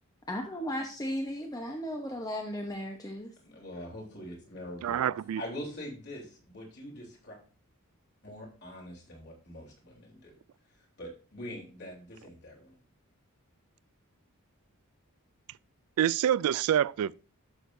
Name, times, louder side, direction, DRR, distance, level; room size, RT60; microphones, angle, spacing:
voice 1, 0.3-3.3, equal, 15° left, 0.9 m, -35 dB
voice 2, 3.4-5.1 5.3-7.4 8.2-10.4 11.0-12.8, equal, 50° left, 3.4 m, -43 dB
voice 3, 4.8-5.4 16.0-17.1, right 10 dB, 75° right, 0.3 m, -26 dB
12.5 x 6.6 x 2.7 m
head